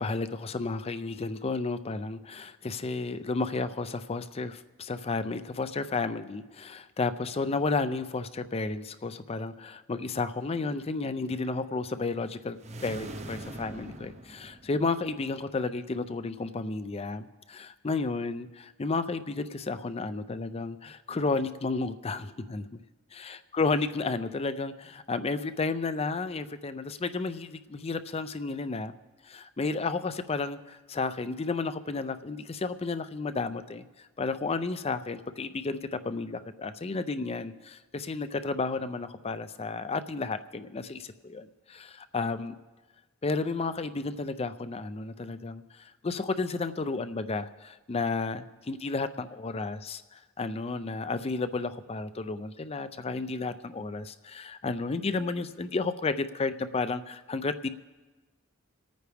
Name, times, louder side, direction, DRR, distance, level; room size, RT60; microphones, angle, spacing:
voice 1, 0.0-12.6 12.8-22.8 23.2-28.9 29.2-42.5 43.2-57.7, left 3 dB, 30° left, 12 dB, 0.4 m, -32 dB
sound 1, 12.6-15.2, right 1 dB, 30° right, 0.6 m, -42 dB
27.5 x 9.3 x 3.4 m, 1.2 s
head